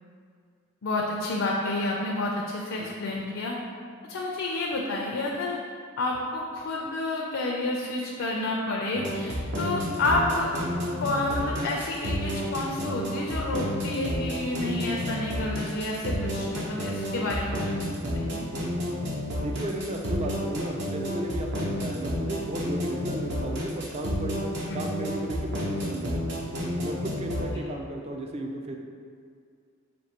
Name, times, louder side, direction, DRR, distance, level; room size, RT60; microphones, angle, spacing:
voice 1, 0.8-3.6 4.0-5.6 6.0-10.5 11.0-17.9 18.1-18.5 24.7-24.9 27.5-27.6, left 2 dB, 70° left, -2 dB, 0.4 m, -30 dB
sound 1, 8.9-27.5, equal, 60° right, 0.8 m, -30 dB
voice 2, 19.4-24.4 24.7-26.4 26.8-28.8, right 1 dB, 30° right, 2 dB, 0.3 m, -34 dB
5.3 x 2.6 x 2.9 m, 2.1 s
head